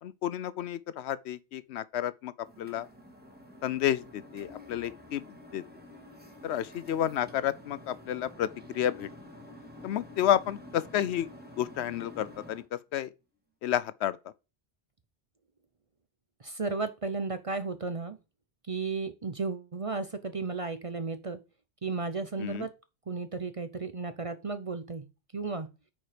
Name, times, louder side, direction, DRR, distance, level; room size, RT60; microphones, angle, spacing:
voice 1, 0.0-2.9 3.6-5.3 5.5-5.6 6.4-9.1 9.8-11.3 11.6-13.1 13.6-14.2 22.4-22.7, left 11 dB, 75° left, 0.8 m, -31 dB
sound 1, 2.4-12.7, left 1 dB, 10° right, 1.7 m, -49 dB
voice 2, 16.4-18.2 18.7-21.4 21.8-22.7 23.1-25.0 25.3-25.7, right 4 dB, 35° right, 0.6 m, -34 dB
8.8 x 4.6 x 5.0 m
omnidirectional pair, 1.2 m